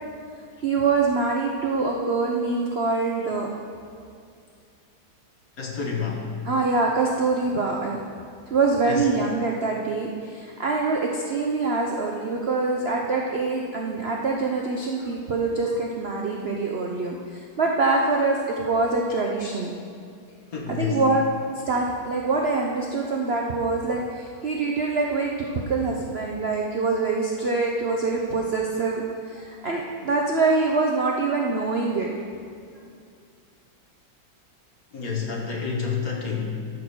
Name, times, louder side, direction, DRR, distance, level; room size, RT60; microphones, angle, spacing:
voice 1, 0.6-3.5 6.5-8.0 8.5-19.7 20.7-21.2 21.7-32.2, right 3 dB, 60° right, -1 dB, 0.6 m, -24 dB
voice 2, 5.6-6.3 8.8-9.0 20.5-21.0 34.9-36.7, left 5 dB, 50° left, 0 dB, 1.6 m, -29 dB
13.5 x 4.8 x 6.1 m, 2.3 s
omnidirectional pair, 2.2 m